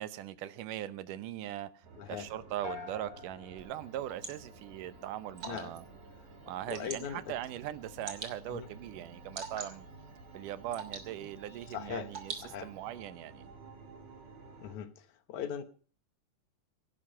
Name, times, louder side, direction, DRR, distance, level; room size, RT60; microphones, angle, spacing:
voice 1, 0.0-5.8 6.5-9.8 10.3-13.5, right 12 dB, 85° right, 2.4 m, -40 dB
sound 1, 1.8-14.8, right 3 dB, 65° right, 4.6 m, -53 dB
voice 2, 2.0-2.3 5.5-5.7 6.7-7.3 8.5-8.7 11.7-12.1 12.4-12.7 14.6-15.6, left 9 dB, 70° left, 2.5 m, -40 dB
sound 2, 2.6-4.9, left 6 dB, 55° left, 3.2 m, -47 dB
Water / Drip, 3.6-13.0, right 5 dB, 45° right, 3.2 m, -48 dB
17.5 x 11.5 x 5.6 m
omnidirectional pair, 3.6 m